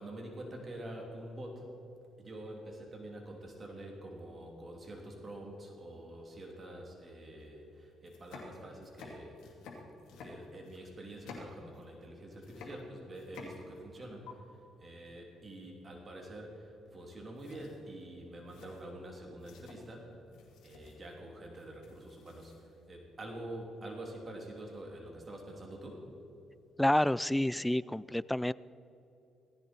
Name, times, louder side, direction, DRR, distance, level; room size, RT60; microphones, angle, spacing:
voice 1, 0.0-1.7 2.2-9.4 10.2-20.2 20.6-26.2, right 1 dB, 35° right, 0 dB, 3.0 m, -46 dB
sound 1, 7.3-7.4 7.9-12.1 12.3-14.0 14.3-14.4 16.8-17.1 17.4-22.8, left 4 dB, 90° left, 2.6 m, -52 dB
voice 2, 26.8-28.5, left 1 dB, 5° left, 20 dB, 0.3 m, -29 dB
17.5 x 15.0 x 4.5 m, 2.8 s
cardioid pair, 90°, 0 cm